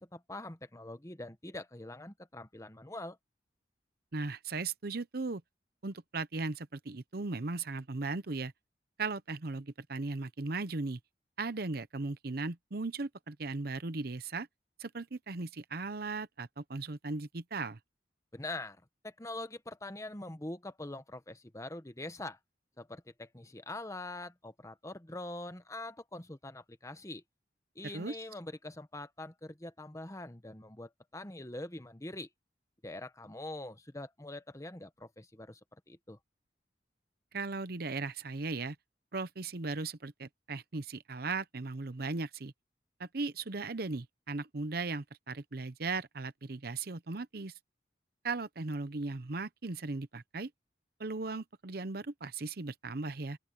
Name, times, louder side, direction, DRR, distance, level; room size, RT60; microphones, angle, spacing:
voice 1, 0.0-3.2 18.3-22.4 22.8-27.2 27.7-32.3 32.8-35.6 35.9-36.2, left 2 dB, 20° left, 1.2 m, -44 dB
voice 2, 4.1-5.4 5.8-8.5 9.0-11.0 11.4-14.5 14.8-17.8 27.8-28.2 37.3-38.8 39.1-42.5 43.0-47.5 48.2-50.5 51.0-53.4, right 3 dB, 60° right, 0.9 m, -37 dB
open air
head